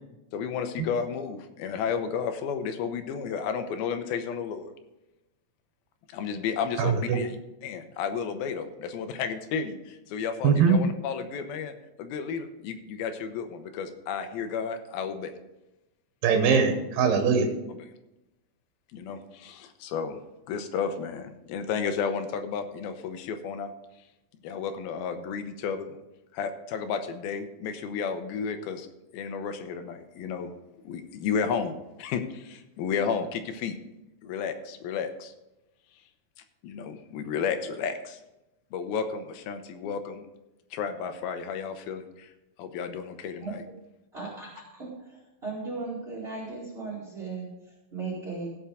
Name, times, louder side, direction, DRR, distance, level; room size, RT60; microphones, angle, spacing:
voice 1, 0.3-4.7 6.1-7.4 7.6-15.3 17.7-17.8 18.9-20.2 20.5-23.7 24.4-26.0 26.3-28.9 29.1-30.5 30.8-33.8 34.2-35.3 36.6-38.2 38.7-40.3 40.7-42.3 42.6-43.6, left 6 dB, 85° left, 8 dB, 2.8 m, -32 dB
voice 2, 6.8-7.2 10.4-10.8 16.2-17.5, right 6 dB, 75° right, 5 dB, 2.6 m, -21 dB
voice 3, 43.4-43.8 44.1-48.5, right 4 dB, 20° right, -7 dB, 1.7 m, -37 dB
16.0 x 5.6 x 4.9 m, 0.96 s
omnidirectional pair, 4.2 m